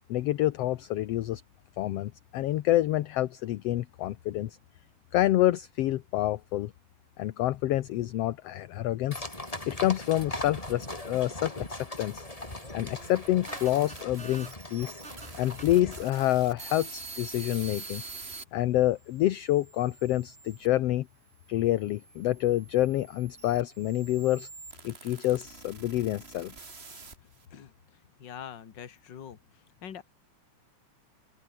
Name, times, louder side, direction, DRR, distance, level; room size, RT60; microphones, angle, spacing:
voice 1, 0.1-1.4 1.8-4.6 5.1-6.7 7.2-9.3 9.7-12.2 12.7-15.0 15.4-18.0 18.5-21.1 21.5-24.5 24.8-26.5, left 14 dB, 70° left, 1.6 m, -27 dB
sound 1, 9.1-16.0, left 1 dB, 10° left, 3.2 m, -40 dB
sound 2, 12.9-18.4 19.1-20.7 21.5-27.5, right 4 dB, 25° right, 2.0 m, -46 dB
voice 2, 28.2-29.4 29.8-30.0, left 8 dB, 40° left, 2.0 m, -43 dB
open air
omnidirectional pair, 3.6 m